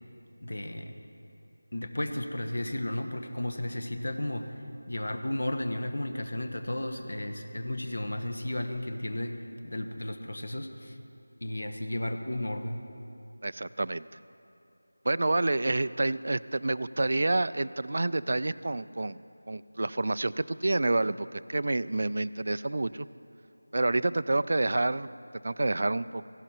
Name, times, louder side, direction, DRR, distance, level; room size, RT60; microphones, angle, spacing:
voice 1, 0.4-0.9 1.7-4.5 4.8-9.3 9.6-11.0 11.4-12.8, left 1 dB, 75° left, 6 dB, 1.4 m, -33 dB
voice 2, 13.4-14.1 15.0-19.2 19.5-23.1 23.7-25.1 25.4-26.2, right 2 dB, 45° right, 16 dB, 0.3 m, -28 dB
17.0 x 15.5 x 4.5 m, 2.7 s
figure-of-eight pair, 175°, 0 cm